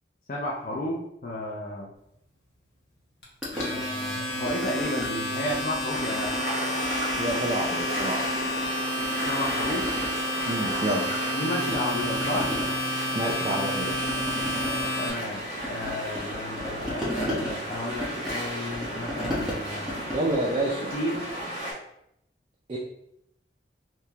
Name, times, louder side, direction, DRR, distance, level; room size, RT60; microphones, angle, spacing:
voice 1, 0.3-1.9 3.6-6.3 9.2-9.9 11.3-12.5 15.0-20.0 20.9-21.2, left 1 dB, 45° left, -3 dB, 0.5 m, -32 dB
Domestic sounds home sounds, 3.2-15.1, equal, 65° left, 1.1 m, -30 dB
sound 1, 3.4-5.1 5.4-6.5 6.8-8.7 9.0-11.4 11.7-21.5, equal, 5° right, 1.0 m, -36 dB
sound 2, 5.9-21.7, right 1 dB, 55° right, 1.5 m, -35 dB
voice 2, 7.2-8.3 10.5-11.0 13.1-14.1 20.1-20.9 22.7-22.8, right 1 dB, 30° right, -4 dB, 0.4 m, -28 dB
3.4 x 2.8 x 2.8 m, 0.78 s
head